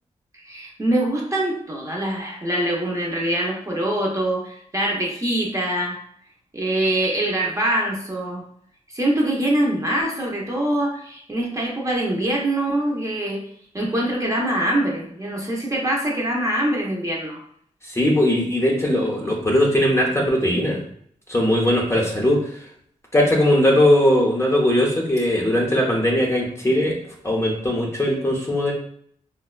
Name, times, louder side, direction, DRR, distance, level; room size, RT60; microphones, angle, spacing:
voice 1, 0.4-6.0 6.5-8.4 8.9-13.4 13.7-17.4, right 1 dB, 25° right, -2 dB, 0.7 m, -24 dB
voice 2, 17.9-20.8 21.3-22.4 23.1-27.0 27.2-28.7, left 1 dB, 20° left, -2 dB, 0.7 m, -19 dB
4.1 x 2.1 x 2.3 m, 0.64 s
wide cardioid pair, 90°, 14 cm